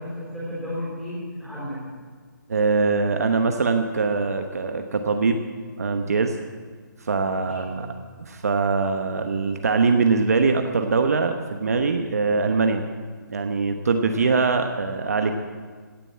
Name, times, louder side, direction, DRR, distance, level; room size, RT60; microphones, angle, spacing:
voice 1, 0.0-2.0 7.4-8.0 14.1-14.2, left 1 dB, ahead, -8 dB, 3.6 m, -34 dB
voice 2, 2.5-5.4 5.8-6.4 7.0-7.9 8.3-12.8 13.3-15.3, right 4 dB, 50° right, 5 dB, 1.0 m, -22 dB
17.0 x 9.1 x 8.5 m, 1.5 s
hypercardioid pair, 180°, 11 cm